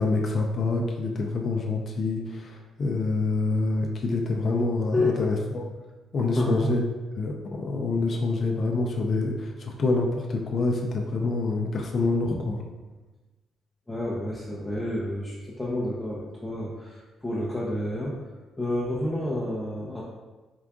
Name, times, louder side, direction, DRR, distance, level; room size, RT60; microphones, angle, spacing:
voice 1, 0.0-5.7 6.1-6.8 7.2-12.6, left 3 dB, 50° left, 1 dB, 0.4 m, -26 dB
voice 2, 6.3-6.7 13.9-18.3 18.6-20.0, left 1 dB, 10° left, -7 dB, 0.6 m, -29 dB
4.5 x 2.5 x 2.3 m, 1.2 s
cardioid pair, 90°, 0 cm